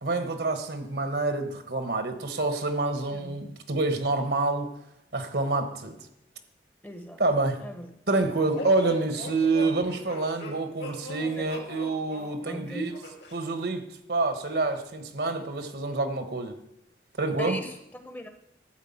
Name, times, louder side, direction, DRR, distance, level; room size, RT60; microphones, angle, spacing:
voice 1, 0.0-4.7 5.1-6.0 7.2-7.6 8.1-12.9 13.3-16.5 17.2-17.6, right 3 dB, 70° right, 8 dB, 1.3 m, -27 dB
voice 2, 6.8-7.2 7.6-7.9 11.4-11.5 12.5-13.0 17.4-18.3, equal, 10° left, 7 dB, 0.9 m, -39 dB
sound 1, 8.5-13.4, left 1 dB, 75° left, 2.5 m, -39 dB
12.0 x 4.9 x 8.7 m, 0.80 s
head